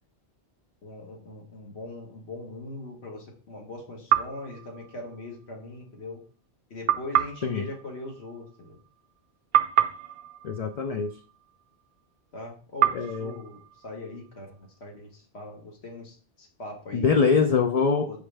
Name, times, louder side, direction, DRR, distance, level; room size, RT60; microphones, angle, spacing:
voice 1, 0.8-6.2 6.7-8.8 12.3-17.1 18.1-18.2, left 2 dB, 80° left, 0 dB, 1.7 m, -41 dB
sound 1, 4.1-5.5 6.9-9.2 9.5-11.8 12.8-14.7, right 11 dB, 60° right, 0.7 m, -29 dB
voice 2, 10.4-11.1 12.9-13.3 16.9-18.1, left 5 dB, 55° left, 6 dB, 0.4 m, -23 dB
6.2 x 4.8 x 3.3 m, 0.41 s
omnidirectional pair, 1.1 m